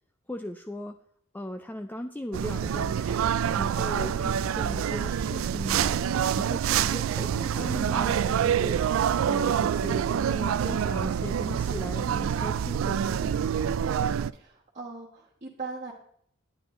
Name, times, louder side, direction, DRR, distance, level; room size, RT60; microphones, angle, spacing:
voice 1, 0.3-1.0 1.3-3.2 3.6-6.0 6.4-13.5, left 1 dB, 10° left, 7 dB, 0.4 m, -38 dB
sound 1, 2.3-14.3, right 8 dB, 75° right, 0.3 m, -26 dB
voice 2, 14.3-15.9, right 4 dB, 35° right, -4 dB, 1.4 m, -39 dB
10.0 x 9.9 x 3.7 m, 0.67 s
head